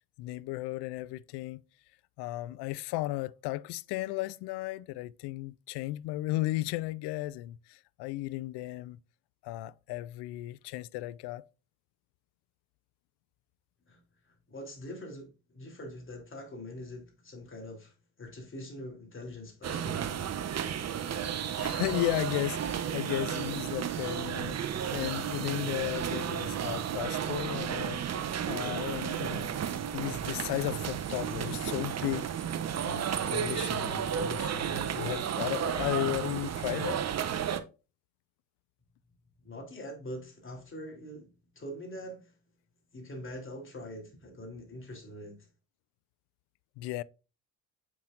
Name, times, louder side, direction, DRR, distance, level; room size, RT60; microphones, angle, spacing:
voice 1, 0.2-1.6 2.2-9.0 9.4-11.5 21.6-24.6 24.9-29.5 29.9-32.3 32.8-37.0 46.8-47.0, left 18 dB, 65° left, 0.5 m, -35 dB
voice 2, 14.3-20.0 39.4-41.3 41.5-42.3 42.9-45.4, equal, 30° left, 3.1 m, -43 dB
sound 1, 19.6-37.6, right 8 dB, 40° right, 0.8 m, -33 dB
7.3 x 5.9 x 2.5 m
supercardioid pair, 65°, 42 cm